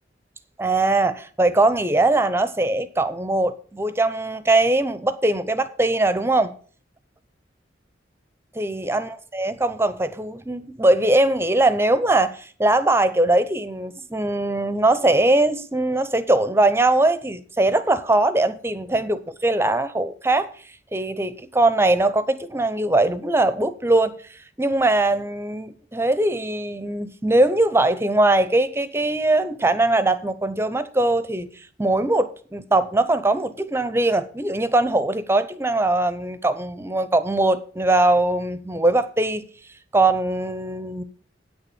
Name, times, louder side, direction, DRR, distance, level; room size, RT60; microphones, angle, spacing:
voice 1, 0.6-6.5 8.5-20.5 20.9-39.5 39.9-41.0, right 2 dB, 15° right, 0.7 m, -21 dB
8.9 x 6.8 x 7.3 m
head